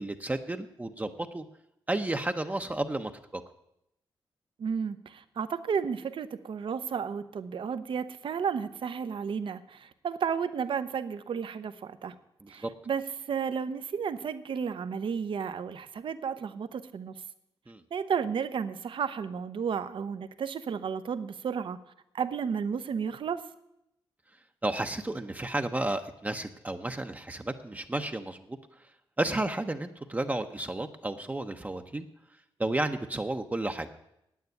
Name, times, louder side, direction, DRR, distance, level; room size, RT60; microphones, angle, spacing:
voice 1, 0.0-1.4 1.9-3.4 12.4-12.7 17.7-17.8 24.6-28.6 29.2-32.1 32.6-33.9, right 2 dB, 15° right, 6 dB, 0.7 m, -32 dB
voice 2, 4.6-12.1 12.5-13.0 13.3-17.1 17.9-21.8 22.1-23.4, right 6 dB, 65° right, 12 dB, 0.8 m, -32 dB
9.4 x 8.7 x 9.3 m, 0.82 s
cardioid pair, 90°, 9 cm